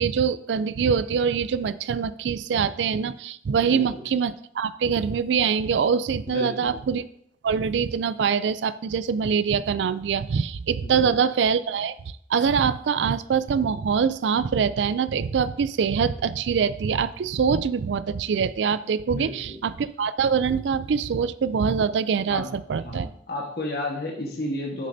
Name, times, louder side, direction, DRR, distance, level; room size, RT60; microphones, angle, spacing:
voice 1, 0.0-7.0 7.4-11.9 12.3-23.1, right 6 dB, 80° right, 15 dB, 0.4 m, -24 dB
voice 2, 3.6-4.0 6.3-6.8 10.8-11.3 19.1-19.6 22.3-22.5 22.8-24.9, left 1 dB, 55° left, -1 dB, 1.3 m, -32 dB
10.5 x 6.5 x 2.7 m, 0.68 s
head